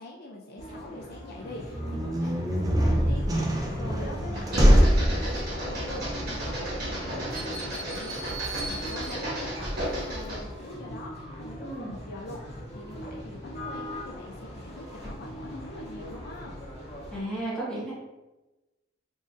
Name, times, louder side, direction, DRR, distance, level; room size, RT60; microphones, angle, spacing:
voice 1, 0.0-12.4 12.7-16.5, left 2 dB, 50° left, 0 dB, 0.3 m, -43 dB
sound 1, 0.6-17.2, equal, 30° left, 1.3 m, -41 dB
sound 2, 1.7-10.3, equal, 20° right, 0.4 m, -26 dB
sound 3, 4.4-10.5, equal, 55° right, 1.1 m, -34 dB
voice 2, 11.6-11.9 17.1-17.9, right 1 dB, 5° left, -8 dB, 1.2 m, -33 dB
3.9 x 2.4 x 2.5 m, 1.1 s
head